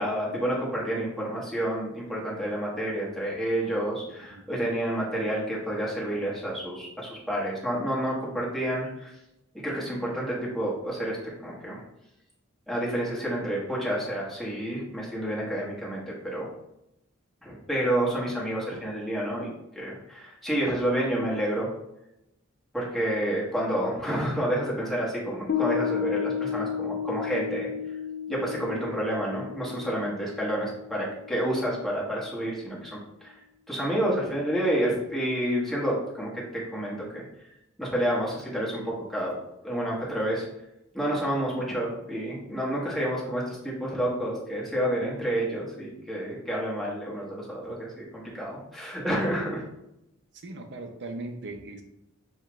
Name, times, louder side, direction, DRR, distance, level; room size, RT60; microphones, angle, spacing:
voice 1, 0.0-9.1 9.5-11.8 12.7-16.5 17.4-19.5 19.7-21.7 22.7-27.7 28.3-33.3 33.7-37.2 37.8-39.3 39.6-40.5 40.9-49.6, right 1 dB, ahead, -6 dB, 1.3 m, -29 dB
Piano, 25.5-32.3, left 8 dB, 45° left, 0.4 m, -33 dB
voice 2, 50.4-51.8, right 2 dB, 60° right, 5 dB, 0.7 m, -39 dB
6.8 x 2.3 x 3.0 m, 0.85 s
head